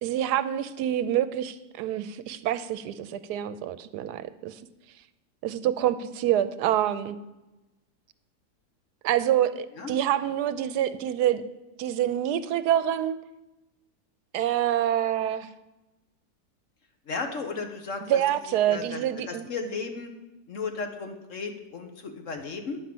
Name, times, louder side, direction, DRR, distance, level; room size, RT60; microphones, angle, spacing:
voice 1, 0.0-4.6 5.4-7.2 9.0-11.4 11.8-13.2 14.3-15.5 18.1-19.5, right 11 dB, 80° right, 13 dB, 1.1 m, -26 dB
voice 2, 17.1-18.2 18.7-20.1 20.5-22.8, left 4 dB, 55° left, 5 dB, 1.3 m, -34 dB
10.0 x 5.5 x 7.6 m, 1.0 s
omnidirectional pair, 1.7 m